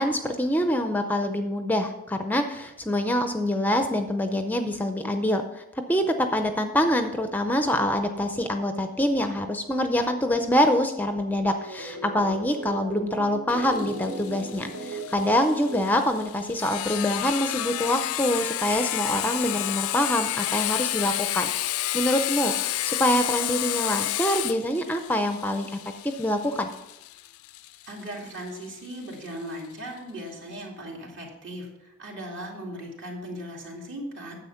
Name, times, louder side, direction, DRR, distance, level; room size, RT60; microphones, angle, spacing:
voice 1, 0.0-5.6 5.9-25.8 26.0-26.7, left 1 dB, 10° left, 7 dB, 0.5 m, -25 dB
sound 1, 11.6-16.8, right 2 dB, 75° right, 1.6 m, -37 dB
Sawing, 13.5-28.9, left 14 dB, 70° left, 0.4 m, -31 dB
voice 2, 27.8-34.4, equal, 55° right, -1 dB, 2.7 m, -38 dB
9.9 x 7.6 x 5.7 m, 0.94 s
head